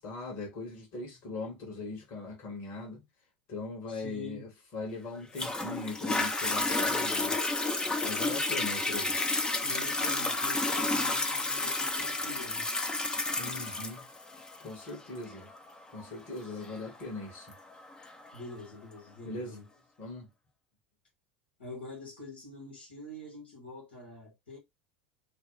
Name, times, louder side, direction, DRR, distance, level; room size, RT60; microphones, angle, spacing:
voice 1, 0.0-3.0 3.5-7.5 8.0-9.2 13.4-14.1 14.6-15.5 15.9-17.5 19.2-19.6 20.0-20.3, left 3 dB, 45° left, 1.8 m, -40 dB
voice 2, 3.9-4.5 9.6-12.7 18.3-19.7 21.6-24.6, left 2 dB, 85° left, 2.0 m, -45 dB
Toilet flush, 5.3-18.4 19.0-19.1, left 2 dB, 15° left, 0.7 m, -31 dB
3.4 x 2.3 x 3.8 m
hypercardioid pair, 85°, 5 cm